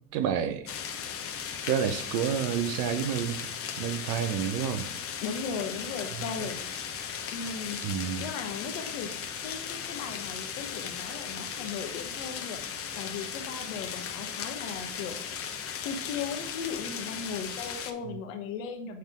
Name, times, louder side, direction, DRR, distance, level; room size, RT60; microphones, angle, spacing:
voice 1, 0.1-0.7 1.7-3.4 3.8-4.9 7.8-8.3 18.1-18.2, right 8 dB, 55° right, 10 dB, 0.9 m, -29 dB
sound 1, 0.7-17.9, left 7 dB, 35° left, 1.0 m, -37 dB
voice 2, 5.2-6.7 7.3-7.8 8.2-12.6 13.0-15.2 15.8-19.0, left 6 dB, 70° left, 4 dB, 1.3 m, -37 dB
9.0 x 3.6 x 3.6 m, 0.67 s
hypercardioid pair, 80°, 41 cm